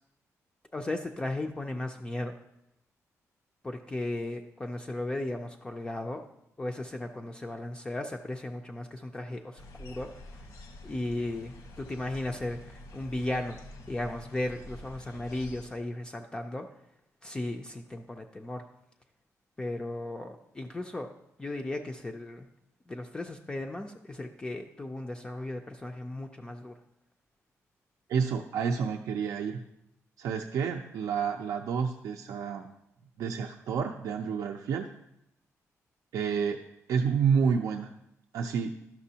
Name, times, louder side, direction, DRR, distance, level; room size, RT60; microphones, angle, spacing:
voice 1, 0.7-2.4 3.6-6.3 6.6-10.1 10.8-13.6 13.9-16.7 17.2-18.6 19.6-21.1 21.4-22.5 22.9-26.8, left 1 dB, 15° left, 3 dB, 0.3 m, -36 dB
sound 1, 9.6-15.7, left 1 dB, 85° left, 1.0 m, -48 dB
voice 2, 28.1-29.6 30.2-32.7 33.2-34.9 36.1-36.6 36.9-37.9 38.3-38.7, right 6 dB, 80° right, 2 dB, 0.5 m, -29 dB
11.5 x 6.0 x 2.8 m, 0.81 s
wide cardioid pair, 170°, 6 cm